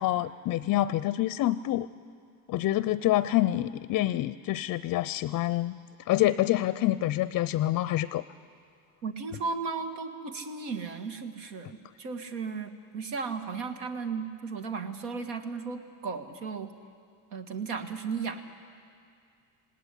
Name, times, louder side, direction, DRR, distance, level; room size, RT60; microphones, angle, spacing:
voice 1, 0.0-1.9 2.5-5.8 6.1-8.2, left 15 dB, 45° left, 17 dB, 0.5 m, -27 dB
voice 2, 9.0-16.7 17.3-18.4, right 5 dB, 75° right, 6 dB, 1.8 m, -35 dB
18.5 x 17.0 x 9.8 m, 2.3 s
hypercardioid pair, 80°, 43 cm